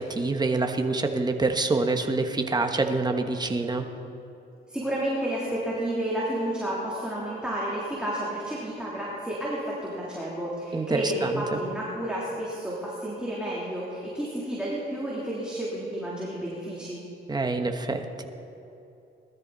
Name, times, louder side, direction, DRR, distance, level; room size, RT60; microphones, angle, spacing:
voice 1, 0.0-3.9 10.7-11.6 17.3-18.2, right 3 dB, 20° right, 5 dB, 1.3 m, -26 dB
voice 2, 4.7-17.0, right 1 dB, 5° right, -7 dB, 3.3 m, -31 dB
20.0 x 13.5 x 4.1 m, 2.8 s
cardioid pair, 90°, 20 cm